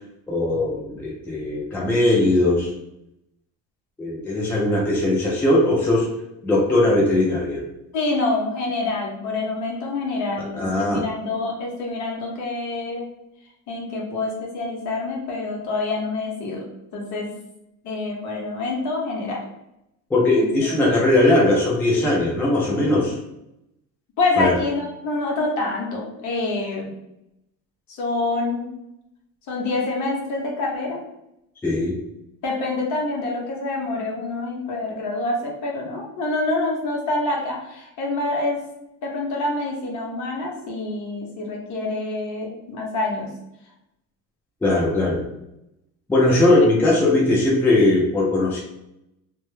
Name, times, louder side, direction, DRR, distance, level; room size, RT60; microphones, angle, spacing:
voice 1, 0.3-2.7 4.0-6.1 6.4-7.6 10.6-11.0 20.1-23.2 24.4-24.5 31.6-31.9 44.6-45.2 46.1-48.6, left 2 dB, 5° left, -4 dB, 0.3 m, -19 dB
voice 2, 7.9-13.1 13.7-16.6 16.9-17.3 17.8-19.4 20.4-20.5 24.2-26.9 27.9-28.7 29.5-31.0 32.4-38.6 39.0-43.3, left 2 dB, 55° left, -1 dB, 0.8 m, -26 dB
2.1 x 2.0 x 3.0 m, 0.85 s
cardioid pair, 140°, 36 cm